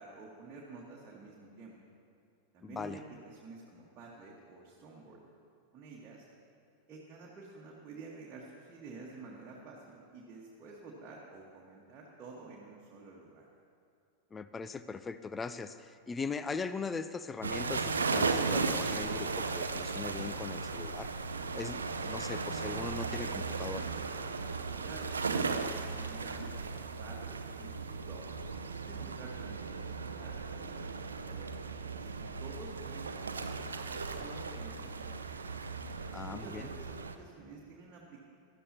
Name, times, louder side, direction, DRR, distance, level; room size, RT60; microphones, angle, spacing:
voice 1, 0.0-1.7 2.5-5.2 5.7-6.3 6.9-13.5 24.8-26.6 27.0-28.3 28.6-31.5 31.9-35.4 36.2-38.2, right 3 dB, 30° right, -4 dB, 1.6 m, -50 dB
voice 2, 2.6-3.0 14.3-21.1 21.5-23.9 36.1-36.7, left 5 dB, 15° left, 13 dB, 0.4 m, -40 dB
sound 1, 17.4-37.2, right 4 dB, 75° right, 0.6 m, -36 dB
17.0 x 12.0 x 2.9 m, 2.7 s
figure-of-eight pair, 90°, 0 cm